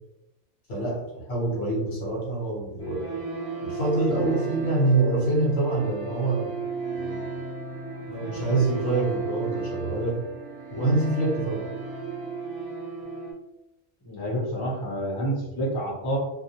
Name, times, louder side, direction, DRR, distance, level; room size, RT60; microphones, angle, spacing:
voice 1, 0.7-3.1 3.6-6.5 6.9-7.3 8.1-10.2 10.7-11.6, right 2 dB, 55° left, -5 dB, 1.1 m, -26 dB
sound 1, 2.8-13.3, right 4 dB, 40° right, 0.5 m, -34 dB
voice 2, 14.0-16.2, right 1 dB, 25° left, -6 dB, 0.7 m, -28 dB
2.3 x 2.1 x 2.8 m, 0.91 s
omnidirectional pair, 1.3 m